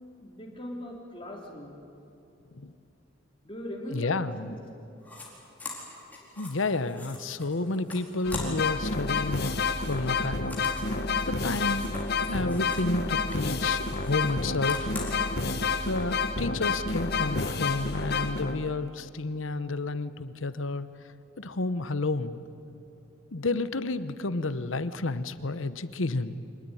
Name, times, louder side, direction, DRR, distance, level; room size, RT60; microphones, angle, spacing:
voice 1, 0.2-1.8 3.4-4.6, equal, 25° left, -1 dB, 3.6 m, -39 dB
voice 2, 3.9-4.6 6.4-9.5 9.8-10.5 11.3-11.9 12.3-15.0 15.8-20.9 21.4-22.4 23.3-26.3, left 2 dB, 80° left, 13 dB, 1.0 m, -31 dB
sound 1, 5.0-5.3 5.6-8.8 9.1-13.0 13.2-15.3, left 2 dB, 10° left, 4.6 m, -43 dB
sound 2, 8.3-18.9, left 4 dB, 50° left, 1.3 m, -29 dB
25.5 x 20.0 x 9.9 m, 2.9 s
head